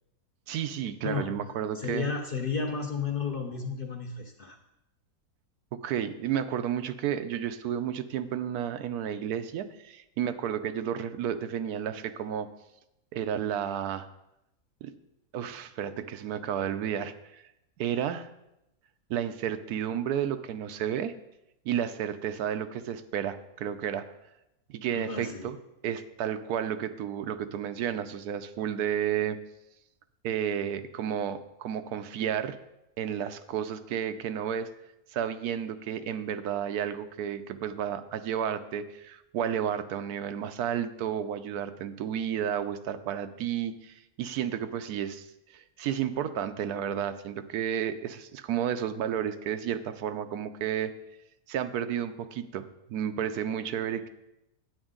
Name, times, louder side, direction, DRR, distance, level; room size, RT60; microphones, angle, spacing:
voice 1, 0.5-2.1 5.7-12.5 13.1-14.1 14.8-14.9 15.3-17.4 17.8-18.3 19.1-21.1 21.6-24.1 24.7-25.6 25.8-29.4 30.2-32.6 33.0-34.7 35.1-45.3 45.5-50.9 51.5-54.1, right 9 dB, 80° right, 10 dB, 1.1 m, -32 dB
voice 2, 1.0-1.4 1.7-4.6 24.9-25.5, left 5 dB, 40° left, 2 dB, 0.9 m, -32 dB
9.0 x 8.8 x 3.7 m, 0.88 s
omnidirectional pair, 1.6 m